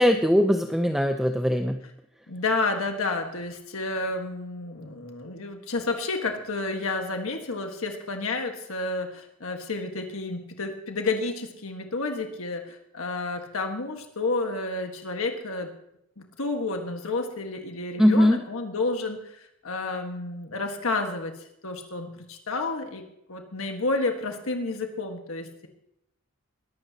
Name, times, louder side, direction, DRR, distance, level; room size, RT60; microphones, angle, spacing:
voice 1, 0.0-1.8 18.0-18.4, equal, ahead, 5 dB, 0.6 m, -20 dB
voice 2, 2.3-15.7 16.2-21.3 21.6-23.0 23.3-25.7, left 3 dB, 75° left, 4 dB, 1.5 m, -30 dB
21.5 x 12.0 x 2.9 m, 0.78 s
head